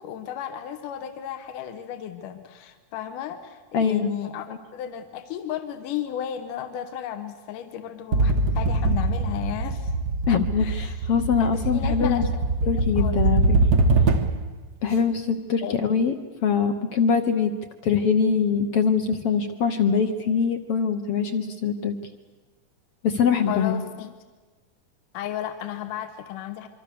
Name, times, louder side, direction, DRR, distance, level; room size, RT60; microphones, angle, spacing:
voice 1, 0.0-9.9 10.6-11.0 11.4-12.3 12.7-13.2 15.6-15.7 23.5-24.1 25.1-26.7, left 10 dB, 80° left, 8 dB, 2.7 m, -34 dB
voice 2, 3.7-4.6 10.3-12.2 12.7-13.6 14.8-16.1 16.4-17.5 17.8-21.9 23.0-23.8, left 6 dB, 65° left, 6 dB, 1.5 m, -23 dB
sound 1, 8.1-14.5, right 2 dB, 70° right, 0.9 m, -23 dB
26.0 x 24.5 x 6.9 m, 1.3 s
omnidirectional pair, 3.7 m